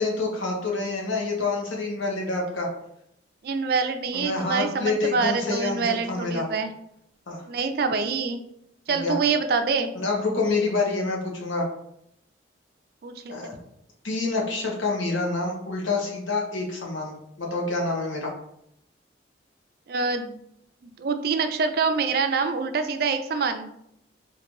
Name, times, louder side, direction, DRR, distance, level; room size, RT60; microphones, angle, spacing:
voice 1, 0.0-2.7 4.1-6.5 7.3-7.4 8.9-9.1 9.9-11.6 13.3-13.5 14.0-18.3, left 3 dB, 85° left, -1 dB, 0.9 m, -27 dB
voice 2, 3.4-6.7 7.5-8.4 8.9-9.9 13.0-13.5 19.9-20.3 21.0-23.7, right 5 dB, 50° right, 7 dB, 0.3 m, -25 dB
3.8 x 2.5 x 3.0 m, 0.75 s
head